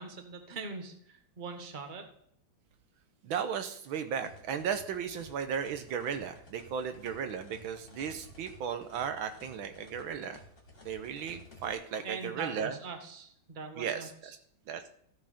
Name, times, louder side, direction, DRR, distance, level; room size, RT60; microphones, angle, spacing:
voice 1, 0.0-2.1 12.0-14.4, right 4 dB, 25° right, 6 dB, 1.3 m, -42 dB
voice 2, 3.2-10.4 10.8-12.7 13.8-14.1 14.7-14.9, right 7 dB, 75° right, 9 dB, 1.6 m, -35 dB
sound 1, 4.2-11.7, left 1 dB, 25° left, 2.5 m, -55 dB
13.5 x 6.6 x 4.9 m, 0.67 s
omnidirectional pair, 2.3 m